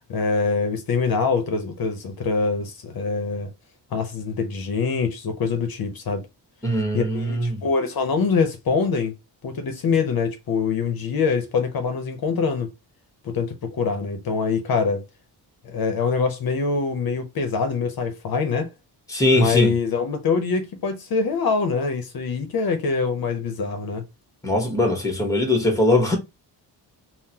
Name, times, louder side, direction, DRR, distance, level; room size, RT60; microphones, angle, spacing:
voice 1, 0.1-3.5 3.9-6.3 6.9-9.1 9.4-12.7 13.2-15.0 15.6-18.7 19.3-24.0, left 5 dB, 60° left, 0.8 m, -24 dB
voice 2, 6.6-7.6 19.1-19.7 24.4-26.2, left 1 dB, 10° left, 1.1 m, -21 dB
3.7 x 2.1 x 2.8 m
wide cardioid pair, 125°, 41 cm